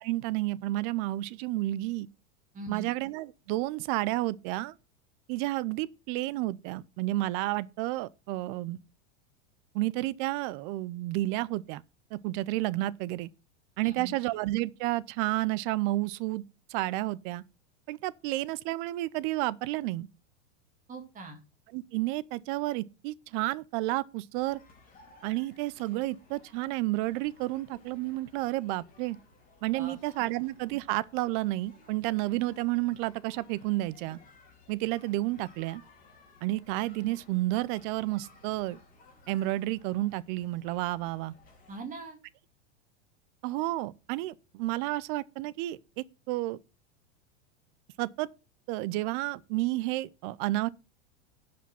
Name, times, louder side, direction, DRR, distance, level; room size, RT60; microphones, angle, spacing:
voice 1, 0.0-2.1 2.7-4.7 5.3-8.8 9.7-11.8 12.1-13.3 13.8-16.4 16.7-17.4 17.9-20.1 21.7-24.6 25.2-29.2 29.6-34.2 34.7-35.8 36.4-38.8 39.3-41.3 43.4-46.6 48.0-48.3 48.7-50.7, right 18 dB, 45° right, 0.5 m, -31 dB
voice 2, 2.5-2.9 13.8-14.2 20.9-21.4 29.7-30.3 41.7-42.2, right 4 dB, 20° right, 2.1 m, -42 dB
sound 1, 24.4-41.8, left 3 dB, 25° left, 3.3 m, -58 dB
11.0 x 5.1 x 5.8 m
supercardioid pair, 130°, 35 cm